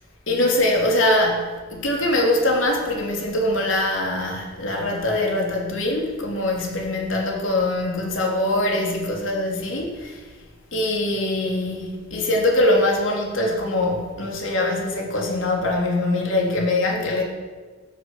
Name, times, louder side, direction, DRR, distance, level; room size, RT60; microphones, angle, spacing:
voice 1, 0.3-10.2 10.7-17.2, left 1 dB, 85° left, 0 dB, 3.4 m, -23 dB
20.5 x 8.1 x 7.4 m, 1.4 s
head